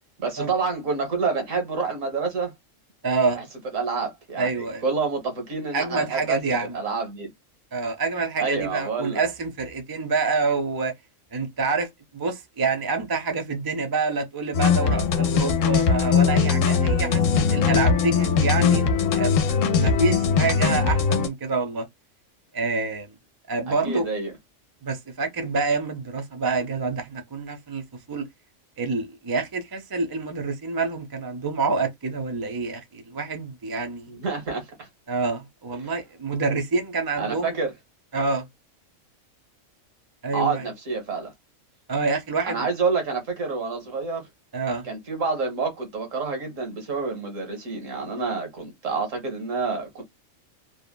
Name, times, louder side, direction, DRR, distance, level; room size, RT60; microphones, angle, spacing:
voice 1, 0.2-2.5 3.3-3.4 3.7-6.4 6.7-7.3 8.4-9.2 23.7-24.3 34.1-34.9 35.8-35.9 37.2-37.7 40.3-41.3 42.5-44.3 44.8-50.0, right 4 dB, 75° right, 1.4 m, -28 dB
voice 2, 3.0-3.4 4.4-4.8 5.7-6.8 7.7-10.9 11.3-18.9 19.1-19.4 19.7-21.9 22.5-23.1 23.5-24.1 24.8-27.8 28.1-28.3 28.8-34.1 35.1-37.6 38.1-38.4 40.2-40.7 41.9-42.7 44.5-44.9, right 4 dB, 30° right, 0.4 m, -27 dB
sound 1, 14.5-21.3, left 6 dB, 75° left, 0.9 m, -20 dB
3.3 x 2.1 x 2.2 m
omnidirectional pair, 1.4 m